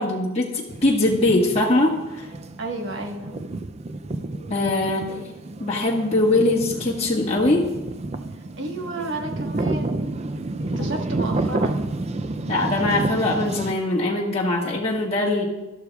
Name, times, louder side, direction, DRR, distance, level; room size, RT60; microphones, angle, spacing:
voice 1, 0.0-2.3 4.5-5.3 5.6-7.7 10.8-10.9 12.5-15.5, left 2 dB, 30° left, -4 dB, 1.6 m, -22 dB
sound 1, 0.7-13.7, right 2 dB, 30° right, 0.4 m, -30 dB
voice 2, 2.6-3.4 8.3-10.1 10.8-11.9, right 2 dB, 60° right, 2 dB, 1.4 m, -32 dB
12.5 x 11.5 x 2.4 m, 1.0 s
head